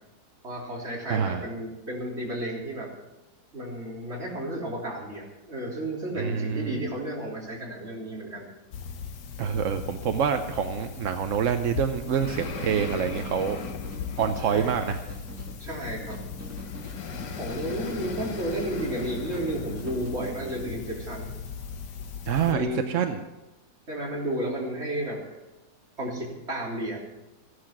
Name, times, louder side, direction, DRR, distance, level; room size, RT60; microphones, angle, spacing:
voice 1, 0.4-2.9 3.5-8.5 14.4-14.7 15.6-16.2 17.4-21.3 22.5-22.8 23.9-25.4 26.0-27.0, right 1 dB, 40° right, -3 dB, 3.9 m, -32 dB
voice 2, 1.1-1.4 6.2-6.8 9.4-13.6 14.2-15.0 22.2-23.2, right 7 dB, 55° right, 7 dB, 1.0 m, -26 dB
sound 1, 8.7-22.5, left 6 dB, 75° left, 1.7 m, -37 dB
sound 2, 12.2-20.6, right 1 dB, 10° right, 2.0 m, -44 dB
15.0 x 11.5 x 6.0 m, 1.1 s
omnidirectional pair, 1.8 m